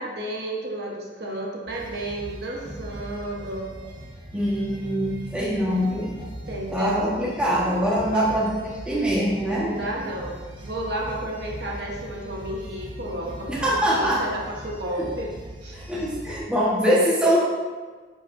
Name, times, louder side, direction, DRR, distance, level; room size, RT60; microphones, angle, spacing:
voice 1, 0.0-3.7 6.5-7.1 8.1-8.3 9.5-10.3 10.6-15.3 15.6-15.8 17.2-17.4, right 1 dB, 65° right, -2 dB, 1.1 m, -32 dB
sound 1, 1.7-16.4, right 1 dB, 25° right, 1.2 m, -40 dB
voice 2, 4.3-6.1 6.7-8.6 8.8-9.8 13.5-14.2 15.7-17.4, equal, 5° right, -6 dB, 1.3 m, -23 dB
11.0 x 5.1 x 2.6 m, 1.4 s
head